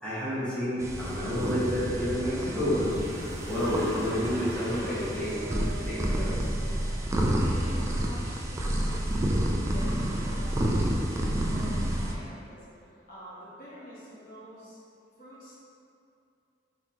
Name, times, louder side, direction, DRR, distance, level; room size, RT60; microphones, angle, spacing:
voice 1, 0.0-3.0 3.5-6.6, equal, 5° left, -12 dB, 1.2 m, -30 dB
sound 1, 0.8-12.1, right 1 dB, 15° right, 0.3 m, -29 dB
sound 2, 0.9-6.3, right 1 dB, 90° right, 0.9 m, -40 dB
voice 2, 6.9-10.1 10.3-14.8 15.2-15.6, equal, 55° left, -9 dB, 1.2 m, -47 dB
4.1 x 3.7 x 2.9 m, 2.5 s
head